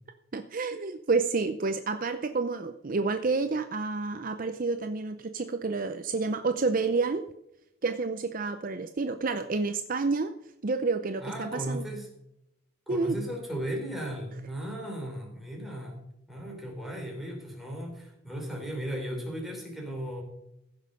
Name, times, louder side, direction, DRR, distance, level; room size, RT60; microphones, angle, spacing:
voice 1, 0.3-7.2 7.8-10.3 10.6-11.8 12.9-13.2, right 4 dB, 45° right, 8 dB, 0.6 m, -29 dB
voice 2, 11.2-12.1 12.9-20.2, equal, ahead, -1 dB, 3.3 m, -36 dB
15.5 x 6.4 x 5.4 m, 0.84 s
head